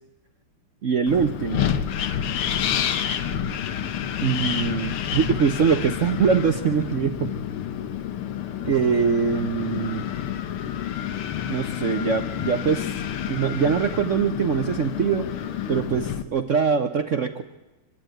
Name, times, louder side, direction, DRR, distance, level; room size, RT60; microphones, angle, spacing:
voice 1, 0.8-1.7 4.2-7.3 8.6-10.0 11.5-12.9 13.2-15.3 15.7-17.4, right 6 dB, 65° right, 7 dB, 0.7 m, -23 dB
Wind, 1.1-16.2, left 9 dB, 80° left, 1.9 m, -29 dB
24.5 x 11.5 x 9.1 m, 1.1 s
omnidirectional pair, 2.4 m